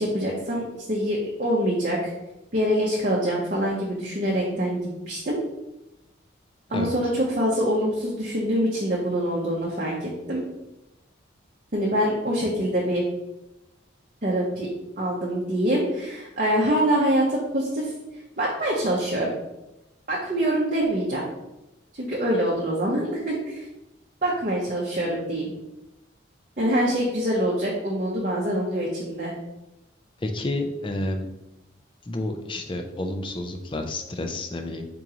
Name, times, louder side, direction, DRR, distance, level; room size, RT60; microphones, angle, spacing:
voice 1, 0.0-2.1 2.5-5.4 6.7-10.4 11.7-13.0 14.2-14.7 15.0-17.9 18.4-19.3 20.1-21.2 21.9-23.6 24.2-25.5 26.6-29.3, equal, 40° right, -4 dB, 0.7 m, -25 dB
voice 2, 30.2-31.3 32.1-34.9, left 2 dB, 25° left, 5 dB, 0.4 m, -30 dB
3.8 x 2.9 x 4.8 m, 0.97 s
head